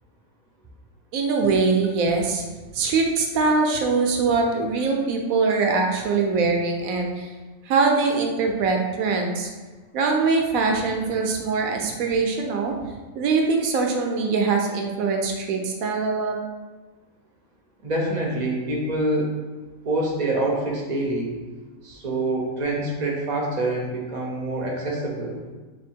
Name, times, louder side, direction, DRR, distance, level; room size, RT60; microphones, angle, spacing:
voice 1, 1.1-2.4 2.7-7.3 7.7-9.5 9.9-12.7 13.1-16.4, right 4 dB, 75° right, 2 dB, 1.0 m, -22 dB
voice 2, 17.8-19.3 19.8-21.3 21.8-25.4, right 1 dB, 40° right, -2 dB, 0.6 m, -26 dB
3.5 x 2.5 x 4.4 m, 1.3 s
omnidirectional pair, 1.5 m